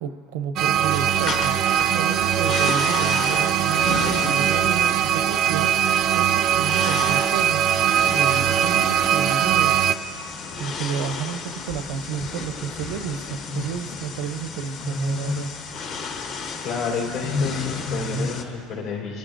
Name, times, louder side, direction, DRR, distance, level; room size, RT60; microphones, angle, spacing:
voice 1, 0.0-1.5 1.9-5.9 6.1-7.6 8.1-9.8 10.6-15.5, right 7 dB, 85° right, 11 dB, 0.6 m, -31 dB
sound 1, 0.6-9.9, right 10 dB, 40° right, 0.3 m, -21 dB
sound 2, 0.9-18.4, left 4 dB, 45° left, 1.0 m, -32 dB
voice 2, 16.6-19.2, left 5 dB, 65° left, -2 dB, 3.4 m, -30 dB
26.5 x 13.5 x 2.5 m, 3.0 s
cardioid pair, 165°, 0 cm